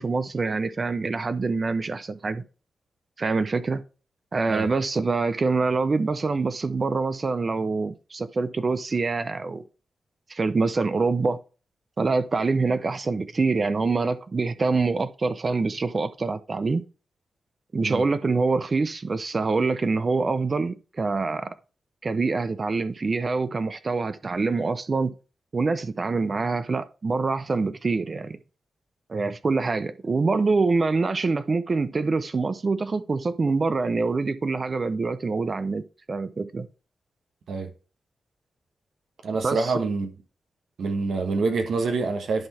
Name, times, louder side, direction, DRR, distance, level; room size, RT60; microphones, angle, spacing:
voice 1, 0.0-2.4 3.2-3.8 4.3-9.6 10.3-11.4 12.0-16.8 17.7-21.5 22.0-25.1 25.5-28.4 29.1-36.7 39.4-39.7, right 4 dB, 45° right, 0.6 m, -25 dB
voice 2, 39.2-40.1 40.8-42.5, right 4 dB, 75° right, 1.2 m, -26 dB
10.5 x 3.8 x 4.3 m
cardioid pair, 55°, 0 cm